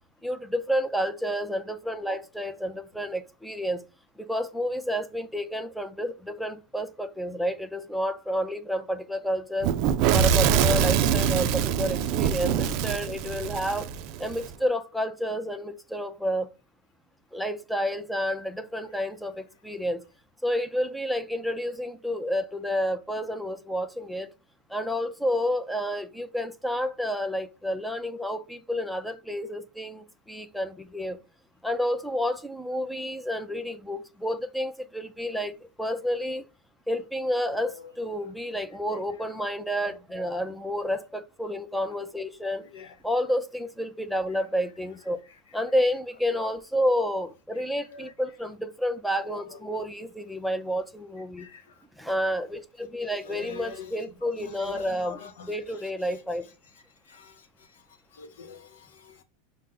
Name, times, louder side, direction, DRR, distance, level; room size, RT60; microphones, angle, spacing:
voice 1, 0.2-3.8 4.2-9.7 10.1-13.9 14.2-16.5 17.3-20.0 20.4-24.3 24.7-31.2 31.6-36.4 36.9-42.6 43.0-45.2 45.5-51.5 52.0-55.2 55.5-56.4, equal, ahead, 0.5 m, -30 dB
Fire / Explosion, 9.6-14.5, right 9 dB, 55° right, 0.4 m, -24 dB
voice 2, 53.3-53.9 54.4-55.5 57.1-57.5 58.1-59.2, left 5 dB, 80° left, 0.8 m, -44 dB
5.2 x 2.0 x 3.8 m
hypercardioid pair, 95°, 0 cm